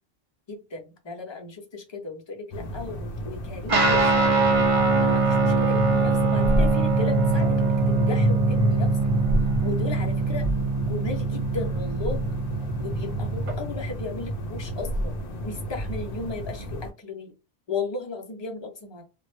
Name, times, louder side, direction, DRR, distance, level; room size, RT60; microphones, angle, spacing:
voice 1, 0.5-4.5 5.0-8.9 9.6-10.5 10.8-12.4 12.8-15.1 15.4-17.3 17.7-19.0, left 3 dB, 45° left, 3 dB, 0.3 m, -35 dB
sound 1, 2.5-16.9, equal, 65° left, 0.7 m, -29 dB
Guitar, 3.7-13.5, right 4 dB, 50° right, 0.4 m, -23 dB
2.0 x 2.0 x 3.0 m, 0.30 s
omnidirectional pair, 1.1 m